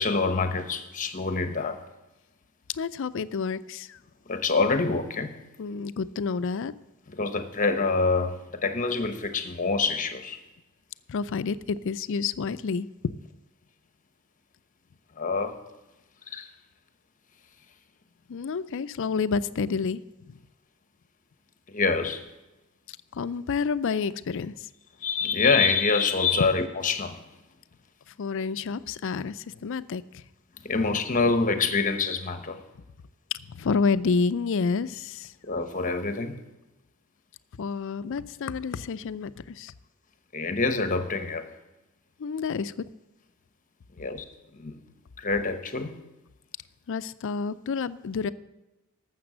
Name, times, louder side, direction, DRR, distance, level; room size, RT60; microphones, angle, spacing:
voice 1, 0.0-1.8 4.3-5.4 7.1-10.4 15.2-15.6 16.3-16.5 21.7-22.2 25.0-27.2 30.6-32.6 35.4-36.4 40.3-41.5 44.0-44.2 44.5-44.8 45.2-46.0, left 4 dB, 40° left, 8 dB, 0.9 m, -26 dB
voice 2, 2.7-4.0 5.6-6.7 11.1-13.1 18.3-20.4 22.9-24.7 28.2-30.2 33.5-35.3 37.6-39.7 42.2-42.7 46.9-48.3, left 5 dB, 65° left, 15 dB, 0.4 m, -29 dB
12.0 x 7.4 x 6.2 m, 1.0 s
head